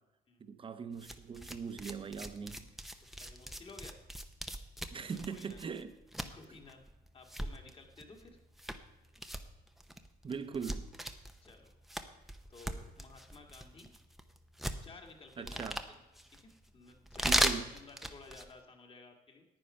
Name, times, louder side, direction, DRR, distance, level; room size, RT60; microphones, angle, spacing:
voice 1, 0.4-2.7 4.9-5.9 10.2-10.9 15.4-15.8 17.2-17.7, right 6 dB, 30° right, 0.9 m, -41 dB
sound 1, 0.9-18.6, equal, ahead, 0.8 m, -39 dB
voice 2, 3.1-4.0 5.0-5.6 6.3-6.8 7.1-8.4 11.4-11.7 12.5-13.9 14.8-16.0 16.3-19.4, left 3 dB, 35° left, 2.0 m, -55 dB
10.0 x 9.2 x 5.6 m
cardioid pair, 110°, 17 cm